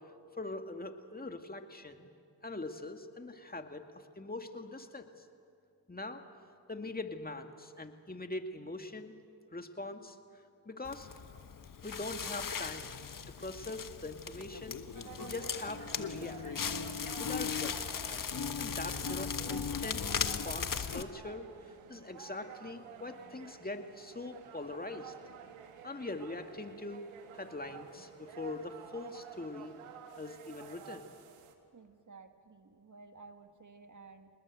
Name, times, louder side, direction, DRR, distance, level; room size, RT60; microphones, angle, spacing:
voice 1, 0.4-2.1 2.4-3.8 4.2-5.1 5.9-6.2 6.7-9.1 9.5-10.2 10.7-11.1 11.8-12.9 13.3-14.8 15.2-16.4 17.2-17.8 18.6-21.5 21.9-25.1 25.8-27.0 27.3-29.7 30.2-31.1, left 2 dB, 20° left, 5 dB, 2.3 m, -42 dB
Crackle, 10.8-21.0, left 6 dB, 40° left, 1.4 m, -37 dB
sound 1, 14.9-31.5, right 8 dB, 90° right, 1.9 m, -51 dB
voice 2, 31.7-34.3, right 4 dB, 35° right, 6 dB, 1.8 m, -54 dB
27.5 x 20.0 x 7.9 m, 2.3 s
supercardioid pair, 50°, 49 cm